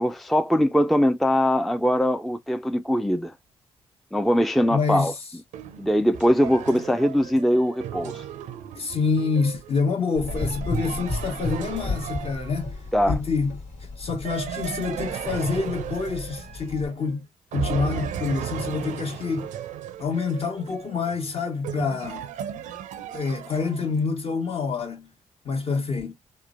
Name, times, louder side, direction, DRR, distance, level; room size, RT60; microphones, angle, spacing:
voice 1, 0.0-3.3 4.1-5.1 5.8-8.2 12.9-13.2, equal, ahead, 0.3 m, -21 dB
voice 2, 4.7-5.1 8.8-12.7 13.1-13.6 14.0-17.2 17.5-19.5 20.0-22.3 23.1-25.1 25.4-26.1, left 4 dB, 50° left, 1.1 m, -27 dB
sound 1, 5.5-12.9 14.2-17.1 17.5-24.0, right 9 dB, 80° right, 0.4 m, -36 dB
Gurgling / Engine, 10.2-16.9, left 2 dB, 70° left, 1.5 m, -33 dB
3.0 x 2.1 x 2.4 m
supercardioid pair, 55°, 13 cm